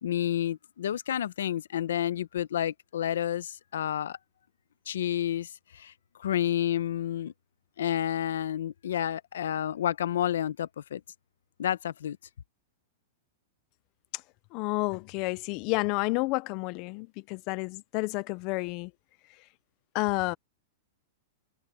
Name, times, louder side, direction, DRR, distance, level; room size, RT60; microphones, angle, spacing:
voice 1, 0.0-4.2 4.9-5.9 6.2-7.3 7.8-11.0 11.6-12.2, left 11 dB, 85° left, 0.8 m, -30 dB
voice 2, 14.5-18.9 19.9-20.4, left 24 dB, 30° left, 0.3 m, -30 dB
supercardioid pair, 180°, 0 cm